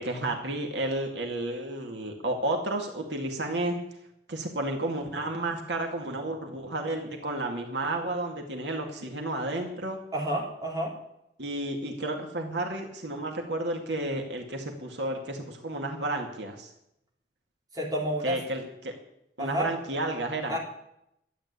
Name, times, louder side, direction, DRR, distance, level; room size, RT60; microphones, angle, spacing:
voice 1, 0.0-3.8 4.3-10.0 11.4-16.7 18.2-18.9 19.4-20.6, right 2 dB, 80° right, 2 dB, 2.2 m, -32 dB
voice 2, 10.1-10.9 17.7-18.4 19.4-19.7 20.5-20.6, right 1 dB, 20° right, -3 dB, 3.7 m, -29 dB
12.5 x 8.8 x 9.9 m, 0.79 s
head